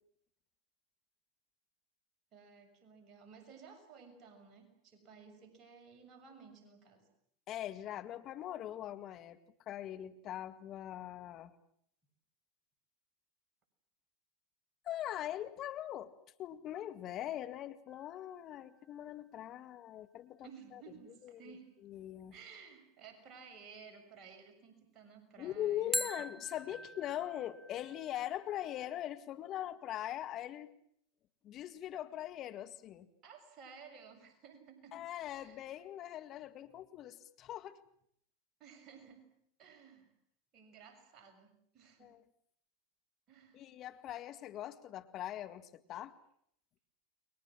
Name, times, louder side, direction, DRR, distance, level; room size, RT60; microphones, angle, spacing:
voice 1, 2.3-7.0 20.4-21.7 22.3-26.3 33.2-35.0 35.4-35.7 38.6-39.3 39.6-40.1 40.5-42.1 43.3-43.7, right 6 dB, 40° right, 4 dB, 6.6 m, -56 dB
voice 2, 7.5-9.4 9.7-11.5 14.8-16.1 16.4-20.8 21.2-21.3 21.8-22.3 25.4-30.7 31.4-33.1 34.9-37.8 42.0-42.2 43.5-46.1, left 12 dB, 45° left, 10 dB, 2.0 m, -41 dB
sound 1, 17.9-18.9 25.9-28.9, equal, ahead, 1.0 m, -43 dB
29.5 x 22.5 x 7.5 m, 0.68 s
hypercardioid pair, 90°, 0 cm